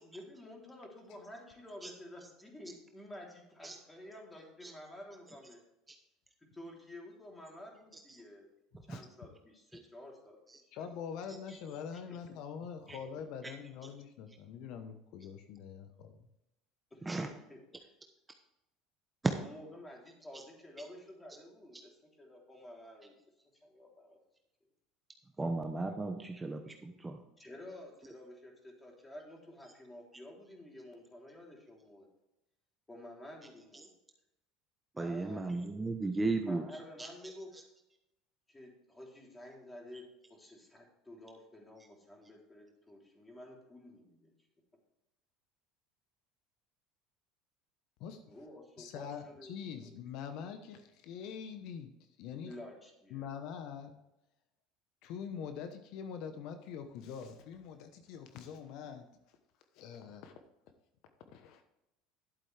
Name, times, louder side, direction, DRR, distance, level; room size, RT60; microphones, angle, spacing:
voice 1, 0.0-5.6 6.5-8.5 8.8-10.4 16.9-17.9 19.4-21.9 22.2-23.1 23.6-24.2 27.4-32.1 32.9-33.9 35.0-35.4 36.4-37.6 38.5-44.3 48.3-49.5 49.8-49.9 52.5-53.3, left 1 dB, 15° left, 0 dB, 3.4 m, -51 dB
voice 2, 10.7-16.2 48.0-48.4 48.8-51.9 52.2-52.6 53.1-53.9 55.0-59.1 59.7-60.3 61.3-61.6, left 7 dB, 65° left, 8 dB, 1.0 m, -44 dB
voice 3, 25.4-27.2 35.0-36.6 37.0-37.1, right 3 dB, 15° right, 5 dB, 1.0 m, -34 dB
11.5 x 7.8 x 3.4 m, 0.91 s
supercardioid pair, 95°, 0 cm